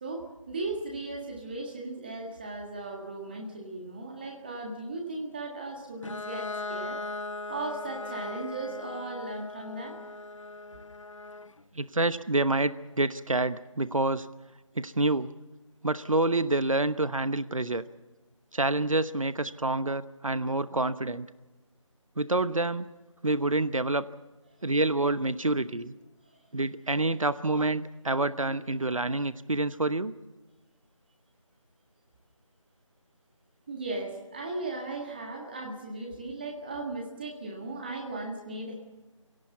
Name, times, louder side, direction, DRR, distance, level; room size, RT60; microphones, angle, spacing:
voice 1, 0.0-7.0 7.5-10.0 33.7-38.8, right 2 dB, 20° right, 1 dB, 1.7 m, -37 dB
Bowed string instrument, 6.0-11.6, left 3 dB, 70° left, 0.7 m, -39 dB
voice 2, 11.7-14.3 14.8-15.3 15.8-17.8 18.5-21.3 22.2-22.9 23.2-24.0 24.6-25.9 26.5-30.1, right 2 dB, 80° right, 14 dB, 1.0 m, -27 dB
26.0 x 17.5 x 7.2 m, 1.1 s
figure-of-eight pair, 165°, 17 cm